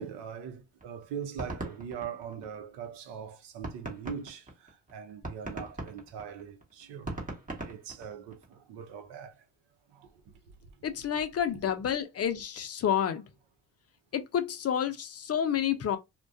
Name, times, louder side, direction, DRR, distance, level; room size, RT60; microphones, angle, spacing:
voice 1, 0.0-7.2 7.6-9.3 9.9-10.1, right 7 dB, 70° right, 0.7 m, -41 dB
sound 1, 0.8-2.9 3.3-3.4 3.6-8.5, right 2 dB, 20° right, 1.0 m, -40 dB
voice 2, 10.8-13.2 14.1-16.0, left 9 dB, 35° left, 0.4 m, -29 dB
2.2 x 2.2 x 2.5 m
supercardioid pair, 75°, 43 cm